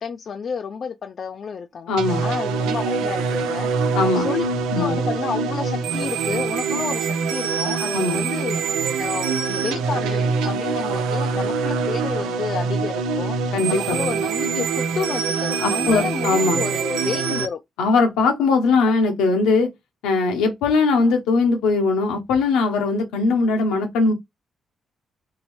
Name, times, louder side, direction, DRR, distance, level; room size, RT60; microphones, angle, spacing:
voice 1, 0.0-1.9 2.2-3.7 4.2-4.5 4.8-17.6, left 6 dB, 60° left, 0.4 m, -30 dB
voice 2, 1.9-2.2 3.9-4.2 4.7-5.0 7.9-8.2 13.5-14.0 15.6-16.6 17.8-19.7 20.0-24.1, left 3 dB, 85° left, 0.7 m, -20 dB
sound 1, 2.0-17.5, right 5 dB, 85° right, 0.4 m, -24 dB
3.0 x 2.8 x 3.0 m
supercardioid pair, 55°, 0 cm